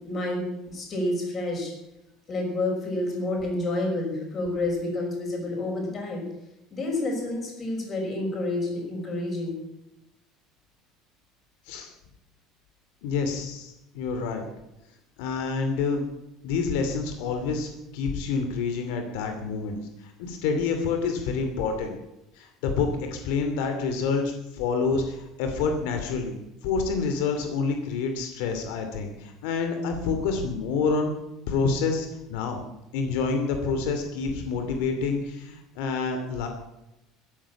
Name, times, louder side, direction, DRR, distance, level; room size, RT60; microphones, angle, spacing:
voice 1, 0.0-1.7 2.3-6.3 6.7-9.6, left 2 dB, 25° left, 0 dB, 5.8 m, -29 dB
voice 2, 13.0-14.4 15.2-16.1 16.4-21.9 22.4-26.4 26.6-31.1 31.5-32.6 32.9-36.5, left 4 dB, 80° left, 6 dB, 2.7 m, -28 dB
14.0 x 11.0 x 8.8 m, 0.90 s
cardioid pair, 170°, 0 cm